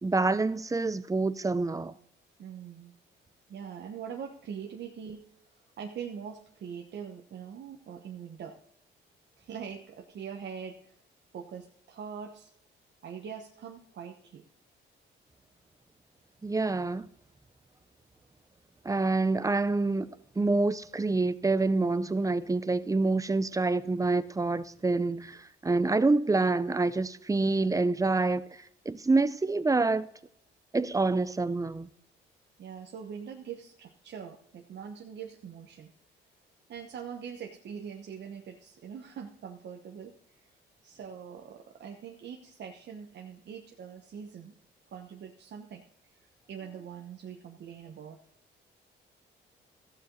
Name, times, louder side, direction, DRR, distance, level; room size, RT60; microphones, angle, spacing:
voice 1, 0.0-1.9 16.4-17.1 18.8-28.4 28.9-30.1 30.7-31.9, right 3 dB, 15° right, 0.6 m, -27 dB
voice 2, 2.4-2.9 3.5-5.2 5.8-8.6 9.4-10.9 11.3-12.5 13.0-14.4 32.6-35.9 36.7-40.4 40.8-44.5 44.9-45.8 46.2-48.2, right 7 dB, 60° right, 1.2 m, -43 dB
14.5 x 8.0 x 4.0 m
cardioid pair, 90°, 20 cm